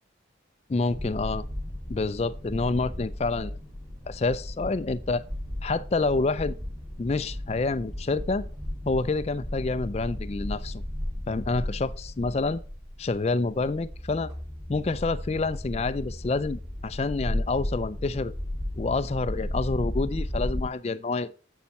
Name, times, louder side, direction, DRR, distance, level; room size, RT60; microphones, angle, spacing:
voice 1, 0.7-1.4 1.9-3.6 4.1-5.2 5.6-6.6 7.0-8.5 8.9-10.8 11.3-12.6 13.0-14.3 14.7-18.3 18.8-21.3, left 3 dB, 35° left, 0.4 m, -28 dB
sound 1, 0.9-20.7, left 1 dB, 15° right, 2.5 m, -35 dB
8.0 x 7.0 x 4.2 m
head